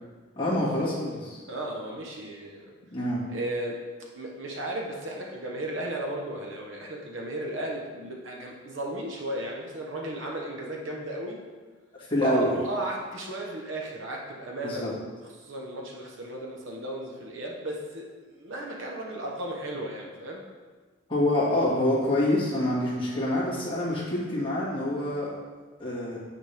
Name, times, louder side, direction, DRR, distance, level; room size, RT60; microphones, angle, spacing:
voice 1, 0.4-1.4 2.9-3.2 12.1-12.6 14.6-14.9 21.1-25.3 25.8-26.2, left 1 dB, 25° left, -8 dB, 2.0 m, -26 dB
voice 2, 1.5-2.7 3.3-3.8 4.1-11.4 12.2-15.0 15.4-20.4, right 1 dB, 70° right, -1 dB, 1.0 m, -35 dB
9.2 x 4.3 x 3.4 m, 1.4 s
head